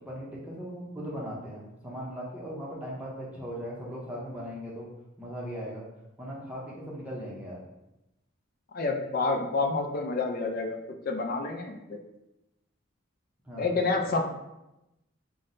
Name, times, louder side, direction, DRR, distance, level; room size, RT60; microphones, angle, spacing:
voice 1, 0.1-4.9 5.2-5.8 6.2-7.6 13.5-13.8, equal, 5° right, -5 dB, 0.6 m, -38 dB
voice 2, 8.7-10.8 11.0-12.0 13.6-14.2, left 3 dB, 45° left, 3 dB, 0.4 m, -28 dB
5.7 x 2.1 x 2.5 m, 0.93 s
head